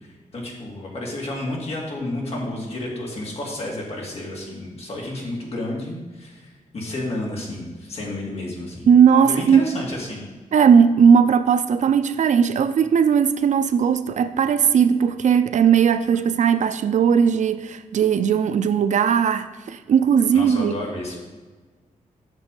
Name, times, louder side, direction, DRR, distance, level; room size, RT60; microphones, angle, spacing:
voice 1, 0.3-8.9 9.2-10.2 20.3-21.2, left 1 dB, 45° left, 2.3 m, -31 dB
voice 2, 8.9-9.6 10.5-20.7, right 7 dB, 60° right, 0.4 m, -17 dB
8.2 x 6.6 x 5.3 m
wide cardioid pair, 165°, 14 cm